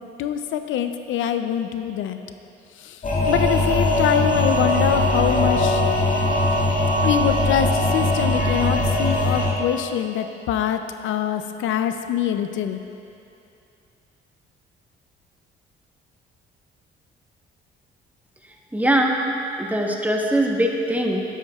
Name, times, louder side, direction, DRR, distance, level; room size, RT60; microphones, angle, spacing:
voice 1, 0.2-2.2 2.8-3.0 3.3-5.8 7.0-12.8, left 9 dB, 80° left, 8 dB, 0.5 m, -24 dB
sound 1, 3.0-9.5, left 1 dB, 40° left, 2.2 m, -20 dB
voice 2, 18.7-19.2 19.6-21.2, right 1 dB, 10° right, 0 dB, 1.0 m, -21 dB
12.0 x 10.0 x 2.3 m, 2.6 s
cardioid pair, 90°, 20 cm